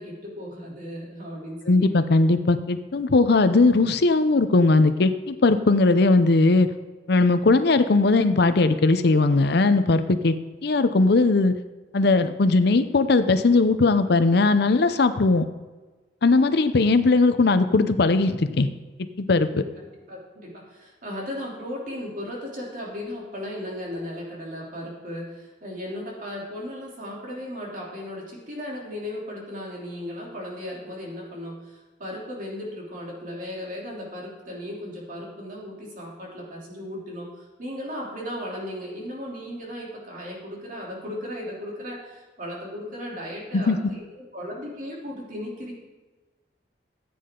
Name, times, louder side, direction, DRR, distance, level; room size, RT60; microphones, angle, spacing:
voice 1, 0.0-1.9 19.5-45.7, left 1 dB, 50° right, -3 dB, 3.2 m, -36 dB
voice 2, 1.7-6.7 7.1-10.3 10.6-11.5 11.9-15.5 16.2-18.7 19.2-19.5 43.5-43.8, left 3 dB, 65° left, 11 dB, 0.6 m, -19 dB
14.5 x 8.6 x 3.8 m, 1.2 s
head